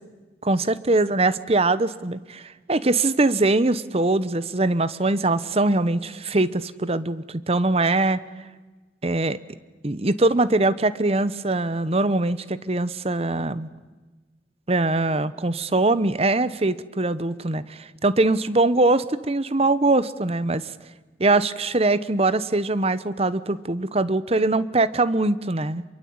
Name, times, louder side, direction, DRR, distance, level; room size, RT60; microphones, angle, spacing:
voice 1, 0.4-8.2 9.0-9.4 9.8-13.7 14.7-20.6 21.2-25.8, right 2 dB, 35° right, 16 dB, 1.0 m, -22 dB
26.0 x 23.0 x 8.8 m, 1.2 s
head